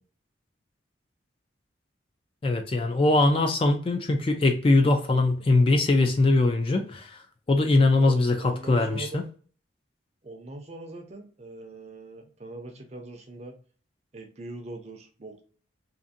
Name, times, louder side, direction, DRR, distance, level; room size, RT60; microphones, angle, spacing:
voice 1, 2.4-7.2 7.5-9.2, left 2 dB, 30° left, 0.3 m, -22 dB
voice 2, 7.9-9.3 10.2-13.5 14.1-15.4, right 2 dB, 35° right, 0.5 m, -41 dB
2.6 x 2.5 x 2.5 m
head